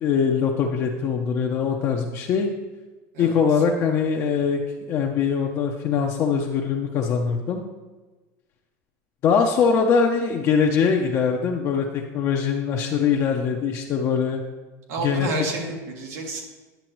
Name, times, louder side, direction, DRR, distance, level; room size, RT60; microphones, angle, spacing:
voice 1, 0.0-2.5 3.2-4.6 4.9-7.6 9.2-14.4 15.0-15.3, left 6 dB, 35° left, 1 dB, 0.6 m, -22 dB
voice 2, 14.9-16.5, right 2 dB, 85° right, 1 dB, 1.8 m, -29 dB
10.0 x 6.8 x 3.1 m, 1.2 s
supercardioid pair, 160°, 8 cm